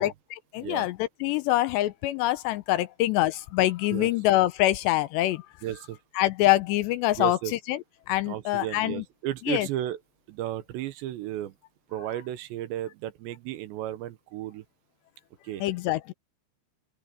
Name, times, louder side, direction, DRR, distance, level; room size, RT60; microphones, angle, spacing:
voice 1, 0.0-5.4 6.2-7.4 7.7-7.8 8.1-9.0 9.5-9.7 15.6-16.1, left 16 dB, 80° left, 2.7 m, -25 dB
voice 2, 5.6-6.0 7.2-7.5 8.2-10.0 10.3-11.5 11.9-14.6 15.4-15.6, right 13 dB, 75° right, 3.1 m, -34 dB
open air
omnidirectional pair, 5.3 m